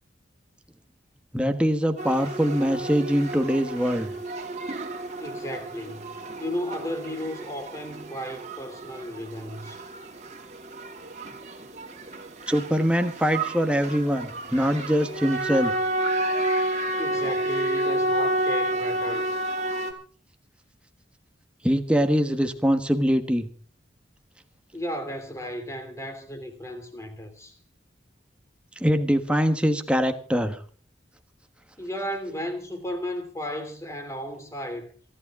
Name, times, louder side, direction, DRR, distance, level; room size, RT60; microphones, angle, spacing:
voice 1, 1.3-4.1 12.5-15.7 21.6-23.5 28.8-30.6, equal, 5° right, 1.3 m, -23 dB
sound 1, 2.0-19.9, right 1 dB, 40° right, 2.6 m, -30 dB
voice 2, 5.2-9.8 17.0-19.3 24.7-27.6 31.8-34.9, equal, 15° left, 2.9 m, -34 dB
28.0 x 11.0 x 3.7 m
head